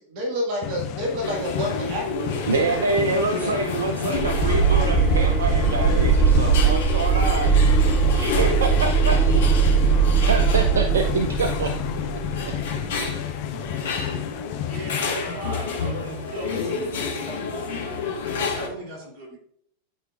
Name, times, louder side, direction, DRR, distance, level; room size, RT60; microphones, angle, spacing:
voice 1, 0.1-3.5, equal, 45° right, -1 dB, 1.8 m, -30 dB
sound 1, 0.6-15.1, left 12 dB, 40° left, 0.5 m, -33 dB
sound 2, 1.2-18.7, left 4 dB, 60° left, 1.4 m, -30 dB
voice 2, 2.5-7.5 8.1-9.2 9.6-9.8 10.2-11.7 12.9-13.1, right 4 dB, 65° right, 6 dB, 0.5 m, -26 dB
sound 3, 4.1-13.0, right 5 dB, 10° right, 1.5 m, -20 dB
voice 3, 14.7-17.9 18.5-19.4, right 1 dB, 30° right, -3 dB, 3.1 m, -37 dB
12.0 x 4.6 x 2.5 m, 0.68 s
figure-of-eight pair, 90°, 0 cm